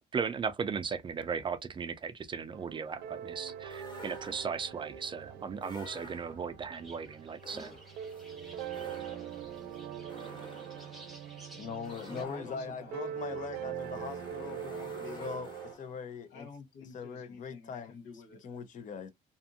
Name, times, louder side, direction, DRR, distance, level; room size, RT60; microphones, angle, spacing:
voice 1, 0.1-7.8, right 6 dB, 30° right, 0.4 m, -36 dB
sound 1, 2.5-15.7, right 9 dB, 80° right, 0.7 m, -43 dB
sound 2, 3.7-4.8 5.6-6.6 7.4-16.1, left 1 dB, 25° left, 1.3 m, -51 dB
sound 3, 6.7-12.2, right 1 dB, ahead, 1.1 m, -55 dB
voice 2, 11.5-14.6 15.2-15.5 15.8-16.5 16.9-17.9 18.4-19.1, left 6 dB, 50° left, 0.7 m, -41 dB
voice 3, 12.1-14.0 14.6-15.5 16.3-18.4, left 5 dB, 90° left, 1.0 m, -49 dB
2.6 x 2.6 x 2.5 m
cardioid pair, 110°, 17 cm